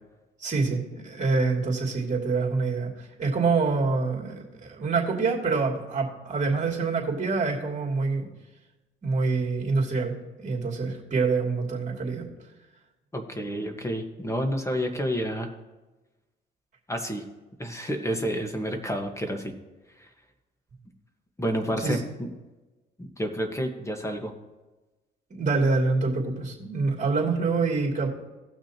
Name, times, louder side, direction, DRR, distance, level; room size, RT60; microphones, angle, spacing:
voice 1, 0.4-8.2 9.0-12.3 21.8-22.0 25.3-28.1, right 4 dB, 40° right, -2 dB, 2.8 m, -26 dB
voice 2, 13.1-15.5 16.9-17.2 17.6-19.5 21.4-22.3 23.0-24.3, equal, 15° left, 4 dB, 1.4 m, -29 dB
18.0 x 6.1 x 2.9 m, 1.1 s
cardioid pair, 90°, 20 cm